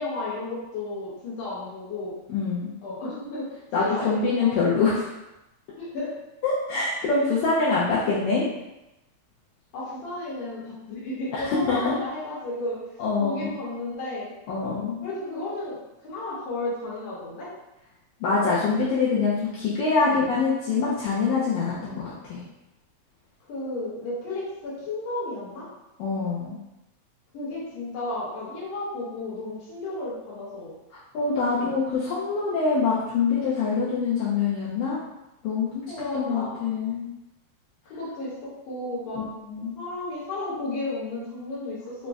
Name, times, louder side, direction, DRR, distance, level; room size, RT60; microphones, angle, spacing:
voice 1, 0.0-2.2 2.8-4.6 5.8-6.1 9.7-12.8 13.2-14.3 15.0-17.5 20.0-20.2 21.8-22.0 23.5-25.7 27.3-30.7 31.6-31.7 35.9-36.6 37.9-39.3 39.8-42.1, left 2 dB, 65° left, -7 dB, 2.1 m, -33 dB
voice 2, 2.3-2.7 3.7-5.1 6.4-8.4 11.3-12.0 13.0-13.5 14.5-15.0 18.2-22.4 26.0-26.6 31.1-35.0 35.4-35.8 36.1-37.1 39.1-39.7, left 4 dB, 80° left, -8 dB, 1.9 m, -25 dB
5.0 x 2.1 x 2.3 m, 0.95 s
omnidirectional pair, 3.4 m